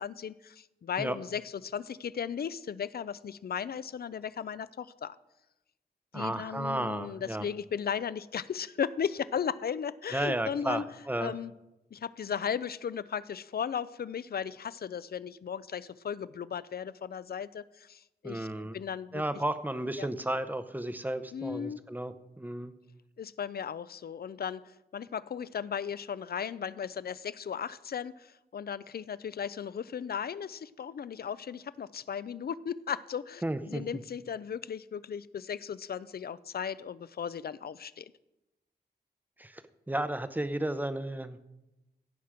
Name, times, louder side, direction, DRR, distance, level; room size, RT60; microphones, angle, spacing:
voice 1, 0.0-5.2 6.1-10.8 11.2-11.5 11.9-19.2 20.0-20.1 21.3-21.8 23.2-38.1, left 7 dB, 65° left, 18 dB, 0.4 m, -36 dB
voice 2, 6.1-7.5 10.1-11.3 18.2-18.8 19.1-22.7 33.4-33.8 39.4-39.6 39.9-41.4, right 1 dB, 10° right, 11 dB, 0.6 m, -33 dB
16.0 x 5.9 x 5.0 m, 0.95 s
wide cardioid pair, 110°, 17 cm